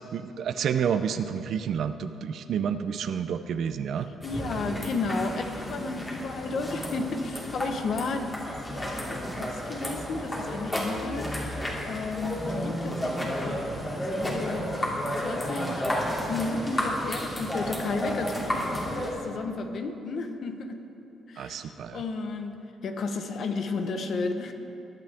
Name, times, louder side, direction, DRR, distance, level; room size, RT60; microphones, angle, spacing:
voice 1, 0.1-4.1 21.4-22.0, right 7 dB, 70° right, 11 dB, 0.6 m, -29 dB
voice 2, 4.2-13.6 14.1-14.7 15.1-15.8 16.3-20.8 21.3-24.5, left 3 dB, 60° left, 6 dB, 1.1 m, -33 dB
sound 1, 4.2-19.1, equal, 20° left, 2.8 m, -32 dB
21.5 x 9.3 x 3.6 m, 2.8 s
cardioid pair, 90°, 0 cm